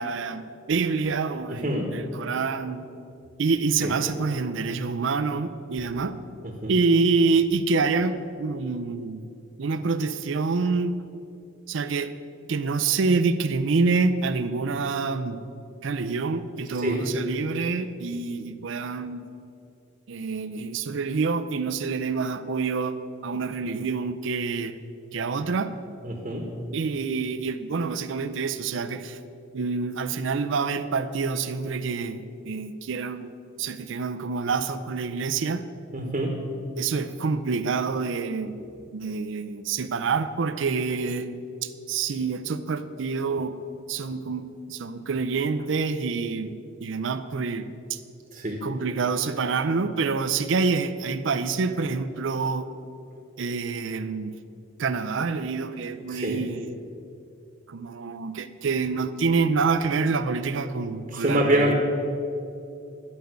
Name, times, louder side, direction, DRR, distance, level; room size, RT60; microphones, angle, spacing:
voice 1, 0.0-2.9 3.4-6.2 6.7-9.2 9.6-11.0 11.7-12.1 12.5-15.4 15.8-19.3 20.1-23.0 23.2-24.8 25.1-25.7 26.7-29.2 29.5-35.6 36.8-38.7 38.9-41.3 41.6-43.6 43.9-46.5 46.8-48.0 48.6-52.7 53.4-54.3 54.8-56.8 57.7-61.7, right 4 dB, 65° right, 11 dB, 0.5 m, -27 dB
voice 2, 1.5-1.9 3.8-3.9 6.6-6.7 16.8-17.0 26.0-26.5 35.9-36.4 48.3-48.6 56.1-56.4 61.1-61.7, right 1 dB, 35° right, 0 dB, 1.1 m, -25 dB
11.5 x 5.3 x 7.9 m, 2.6 s
head